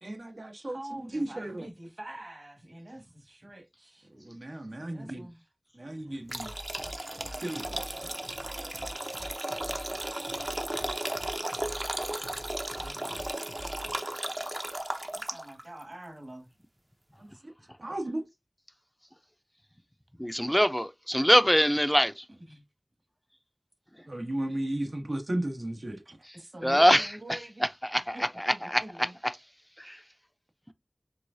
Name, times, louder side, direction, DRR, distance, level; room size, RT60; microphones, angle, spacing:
voice 1, 0.0-1.7 4.1-5.3 5.7-6.5 7.4-8.1 12.8-13.1 17.2-17.5 17.8-18.2 24.1-26.2, right 1 dB, 85° right, 1.3 m, -35 dB
voice 2, 0.7-4.1 4.8-5.4 15.1-16.5 22.5-22.6 26.3-29.2, right 1 dB, 60° right, 1.7 m, -45 dB
sound 1, 6.2-14.0, equal, 55° left, 0.8 m, -47 dB
sound 2, 6.3-15.6, right 1 dB, 45° right, 0.7 m, -35 dB
voice 3, 20.2-22.3 26.6-27.4 27.8-28.8 29.8-30.0, equal, 5° left, 0.6 m, -24 dB
4.8 x 3.7 x 2.7 m
wide cardioid pair, 45°, 0 cm